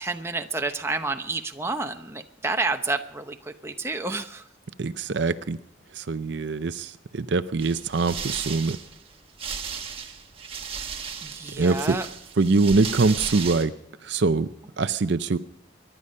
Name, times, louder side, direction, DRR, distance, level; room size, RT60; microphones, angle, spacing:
voice 1, 0.0-4.4 11.2-12.1, right 3 dB, 15° right, 5 dB, 0.8 m, -29 dB
voice 2, 4.8-5.6 5.9-8.8 11.6-12.0 12.4-13.7 14.0-14.5 14.8-15.4, right 3 dB, 60° right, 12 dB, 0.5 m, -23 dB
sound 1, 7.6-13.7, right 6 dB, 30° right, 1.4 m, -35 dB
23.0 x 11.5 x 5.5 m, 0.81 s
head